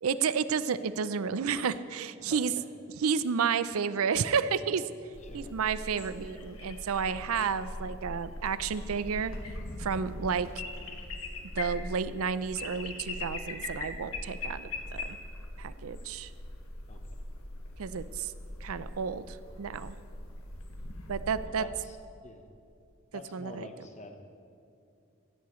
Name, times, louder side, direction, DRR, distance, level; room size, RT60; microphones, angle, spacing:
voice 1, 0.0-2.5 3.0-4.8 5.3-9.3 9.8-10.5 11.6-15.2 15.6-16.3 17.8-18.3 18.6-20.0 21.1-21.6 23.3-23.7, right 6 dB, 80° right, 14 dB, 0.5 m, -31 dB
voice 2, 2.2-2.7 5.2-5.6 16.9-17.0 21.4-22.0 22.2-22.4 23.1-24.2, left 2 dB, 30° left, 5 dB, 0.9 m, -46 dB
sound 1, 5.1-21.5, left 2 dB, 80° left, 1.3 m, -41 dB
16.5 x 15.0 x 3.1 m, 2.5 s
head